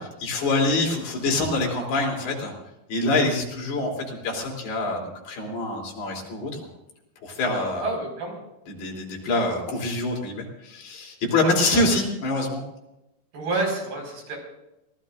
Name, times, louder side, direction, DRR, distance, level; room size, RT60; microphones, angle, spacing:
voice 1, 0.0-2.5 2.9-6.6 7.2-7.9 8.8-12.6, left 2 dB, 85° left, -1 dB, 5.4 m, -25 dB
voice 2, 7.8-8.4 11.4-11.9 13.3-14.4, right 2 dB, 75° right, 0 dB, 7.1 m, -29 dB
25.0 x 19.0 x 2.6 m, 0.91 s
omnidirectional pair, 4.4 m